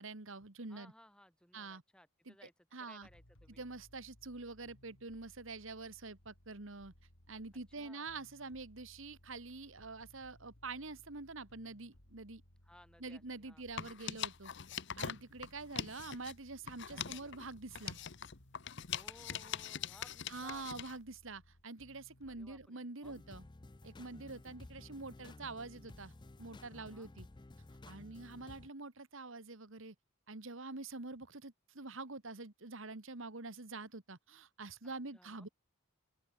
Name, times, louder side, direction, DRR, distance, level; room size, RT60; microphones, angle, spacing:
voice 1, 0.0-0.9 1.5-1.8 2.3-2.4 2.7-3.1 3.6-6.9 7.3-12.4 13.0-14.5 15.0-18.0 20.3-23.4 23.8-27.3 27.9-30.0 30.3-35.5, right 3 dB, 65° right, 1.8 m, -46 dB
voice 2, 0.7-3.6 7.7-8.1 12.6-13.6 16.9-17.4 18.9-20.7 22.3-23.2 26.6-27.1 34.8-35.5, left 1 dB, 5° left, 7.1 m, -62 dB
sound 1, 3.0-22.7, left 1 dB, 75° left, 4.6 m, -64 dB
sound 2, 13.6-16.3 16.7-21.0, left 8 dB, 55° left, 0.9 m, -43 dB
sound 3, 23.0-28.7, left 2 dB, 20° left, 0.5 m, -54 dB
open air
head